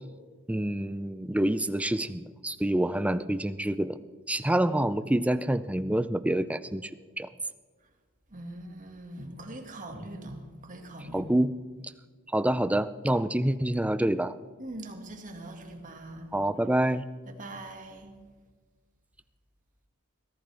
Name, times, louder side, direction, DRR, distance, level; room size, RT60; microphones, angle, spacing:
voice 1, 0.5-4.0 4.3-6.9 7.2-7.3 11.1-11.5 12.3-14.3 16.3-17.0, right 1 dB, 5° right, 13 dB, 0.4 m, -27 dB
voice 2, 8.3-11.3 14.6-16.3 17.4-18.2, right 1 dB, 35° right, 4 dB, 2.0 m, -42 dB
22.5 x 15.0 x 3.5 m, 1.5 s
head